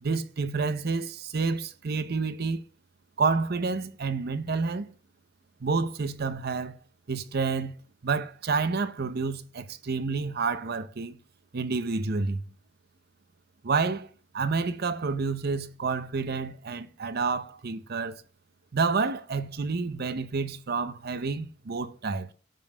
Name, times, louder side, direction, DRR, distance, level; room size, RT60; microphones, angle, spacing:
voice 1, 0.0-2.6 3.2-4.9 5.6-6.8 7.1-7.8 8.0-11.2 11.5-12.4 13.6-14.1 14.3-18.2 18.7-22.3, right 4 dB, 50° right, 0.6 m, -29 dB
13.0 x 5.4 x 2.2 m
head